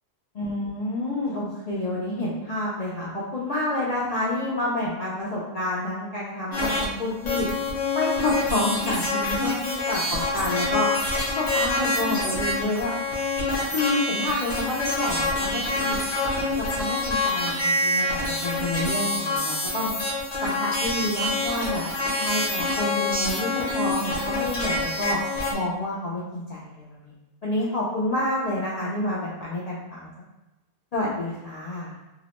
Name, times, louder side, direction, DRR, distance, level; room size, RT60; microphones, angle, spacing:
voice 1, 0.3-7.5 7.9-10.9 11.4-12.9 13.7-16.0 16.4-19.9 20.4-21.9 22.2-25.2 25.5-27.1 27.4-30.1 30.9-31.9, left 1 dB, 80° left, -7 dB, 0.3 m, -29 dB
sound 1, 6.5-6.9 7.3-25.5, left 2 dB, 40° left, 0.7 m, -26 dB
2.8 x 2.0 x 2.9 m, 0.99 s
omnidirectional pair, 1.3 m